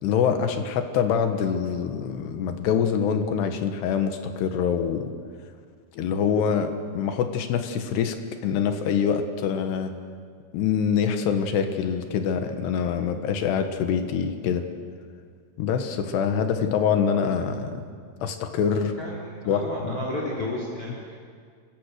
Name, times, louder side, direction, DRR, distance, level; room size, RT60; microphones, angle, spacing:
voice 1, 0.0-5.1 5.9-8.2 8.4-9.9 10.5-14.7 15.6-17.9 18.2-18.9 19.5-20.0, left 7 dB, 90° left, 6 dB, 3.5 m, -25 dB
voice 2, 19.0-21.1, left 1 dB, 35° left, -4 dB, 4.6 m, -32 dB
29.0 x 24.5 x 6.7 m, 2.1 s
omnidirectional pair, 4.7 m